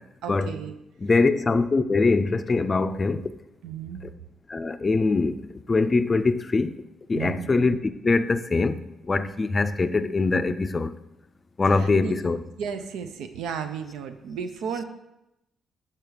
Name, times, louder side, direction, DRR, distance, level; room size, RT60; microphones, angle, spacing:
voice 1, 0.2-0.7 3.6-4.0 7.1-7.5 11.7-12.1 12.6-14.8, right 7 dB, 85° right, 0.6 m, -33 dB
voice 2, 1.0-3.3 4.5-5.4 5.7-6.8 7.1-8.8 9.1-10.9 11.6-12.4, left 3 dB, 30° left, 0.4 m, -23 dB
5.8 x 4.7 x 5.0 m
cardioid pair, 90°, 0 cm